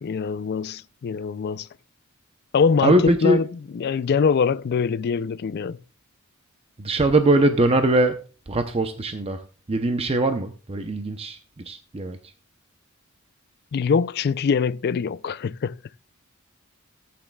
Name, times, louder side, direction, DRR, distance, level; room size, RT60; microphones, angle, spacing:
voice 1, 0.0-1.7 2.5-5.8 13.7-15.8, left 6 dB, 50° left, 0.4 m, -23 dB
voice 2, 2.8-3.4 6.8-8.2 8.5-9.4 9.7-11.4 11.7-12.2, right 1 dB, 30° right, 0.6 m, -21 dB
15.0 x 8.6 x 2.3 m
head